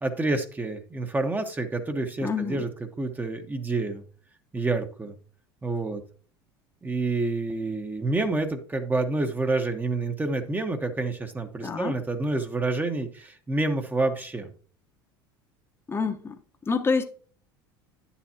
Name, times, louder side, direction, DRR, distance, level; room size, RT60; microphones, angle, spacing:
voice 1, 0.0-2.7 3.0-4.0 4.5-5.2 5.6-6.0 6.8-14.5, right 2 dB, 15° right, 1.2 m, -28 dB
voice 2, 2.2-2.6 11.6-12.0 15.9-16.3 16.7-17.0, left 4 dB, 20° left, 1.1 m, -27 dB
10.0 x 7.1 x 2.9 m
hypercardioid pair, 75°, 12 cm